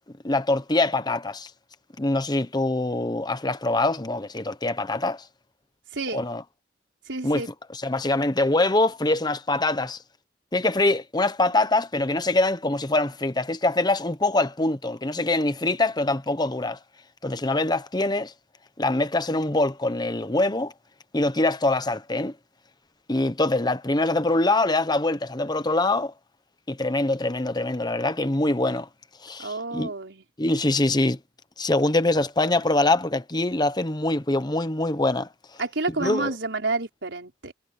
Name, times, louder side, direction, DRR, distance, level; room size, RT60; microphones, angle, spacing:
voice 1, 0.2-1.5 2.0-5.3 6.1-6.4 7.2-7.4 7.7-10.0 10.5-16.8 17.2-18.3 18.8-20.7 21.1-22.3 23.1-26.1 26.7-28.9 29.2-29.9 30.4-31.2 31.6-35.3 36.0-36.3, left 2 dB, 20° left, 1.1 m, -24 dB
voice 2, 5.9-6.3 7.1-7.5 29.4-30.2 35.6-37.5, right 3 dB, 70° right, 4.9 m, -29 dB
head